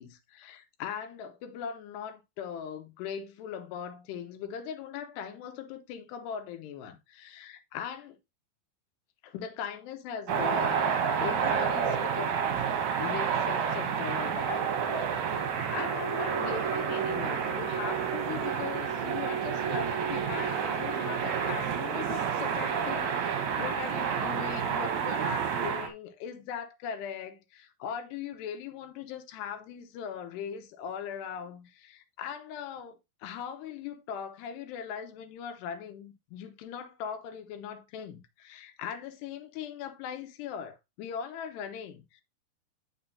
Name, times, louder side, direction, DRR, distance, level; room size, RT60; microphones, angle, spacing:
voice 1, 0.0-8.2 9.2-12.6 13.0-15.2 15.7-42.2, left 8 dB, 90° left, 3.2 m, -40 dB
sound 1, 10.3-25.9, right 7 dB, 60° right, 2.4 m, -29 dB
9.0 x 6.4 x 2.7 m
omnidirectional pair, 4.7 m